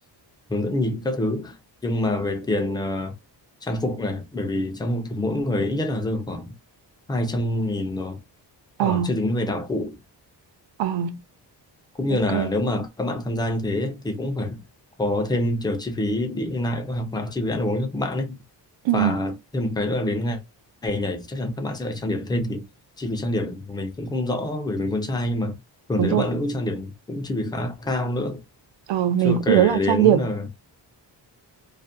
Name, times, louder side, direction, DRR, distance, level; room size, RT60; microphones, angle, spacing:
voice 1, 0.5-1.6 1.8-3.1 3.6-6.5 7.1-8.2 8.8-10.0 11.9-14.6 15.0-18.4 18.9-20.4 20.8-22.6 23.0-25.6 25.9-28.4 29.2-30.5, left 1 dB, 10° left, 0.4 m, -26 dB
voice 2, 8.8-9.1 10.8-11.2 12.3-12.5 18.8-19.2 26.0-26.2 28.9-30.2, right 11 dB, 80° right, 0.5 m, -20 dB
2.5 x 2.1 x 2.5 m
wide cardioid pair, 140°, 43 cm